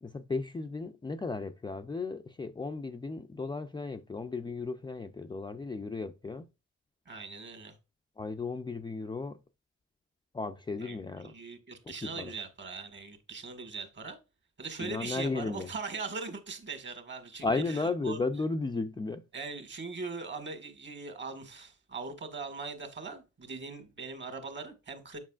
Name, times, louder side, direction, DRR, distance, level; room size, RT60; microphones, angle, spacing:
voice 1, 0.0-6.5 8.2-9.4 10.3-11.3 12.1-12.3 14.8-15.7 17.4-19.2, left 3 dB, 15° left, 0.4 m, -34 dB
voice 2, 7.1-7.8 10.8-14.2 14.6-18.2 19.3-25.2, right 4 dB, 40° right, 1.8 m, -41 dB
7.3 x 5.3 x 2.4 m
cardioid pair, 90°, 30 cm